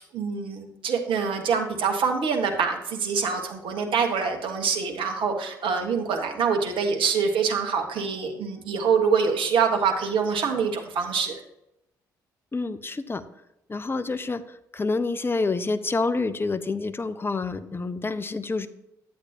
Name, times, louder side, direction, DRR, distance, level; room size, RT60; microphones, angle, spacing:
voice 1, 0.0-11.4, right 6 dB, 60° right, 3 dB, 1.4 m, -25 dB
voice 2, 12.5-13.2 13.7-18.7, left 3 dB, 25° left, 12 dB, 0.7 m, -28 dB
10.0 x 8.1 x 2.8 m, 0.85 s
hypercardioid pair, 45°, 10 cm